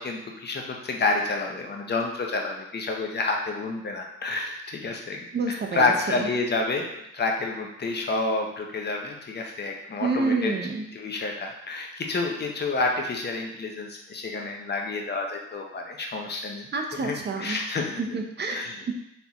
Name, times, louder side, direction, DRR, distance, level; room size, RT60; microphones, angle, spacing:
voice 1, 0.0-10.5 10.9-16.7 17.0-18.0 18.5-18.8, left 3 dB, 35° left, 1 dB, 0.8 m, -29 dB
voice 2, 5.3-6.3 10.0-10.9 16.7-17.6 18.0-18.9, right 3 dB, 35° right, 3 dB, 0.7 m, -28 dB
4.1 x 3.5 x 2.9 m, 0.80 s
cardioid pair, 90°, 30 cm